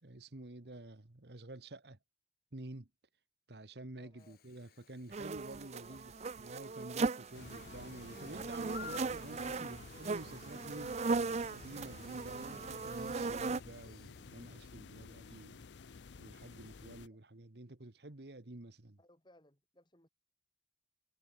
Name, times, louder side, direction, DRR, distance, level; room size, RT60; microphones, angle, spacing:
voice 1, 0.0-2.0 2.5-2.9 3.5-11.0 11.5-15.6 16.2-19.0, right 2 dB, 65° right, 1.5 m, -50 dB
voice 2, 4.0-4.4 5.5-6.1 19.0-20.1, left 1 dB, 25° left, 7.2 m, -65 dB
Chirp tweet / Buzz, 4.2-14.3, left 6 dB, 55° left, 0.8 m, -57 dB
sound 1, 5.1-13.6, right 4 dB, 40° right, 0.5 m, -38 dB
sound 2, 7.3-17.1, left 4 dB, 80° left, 0.6 m, -53 dB
head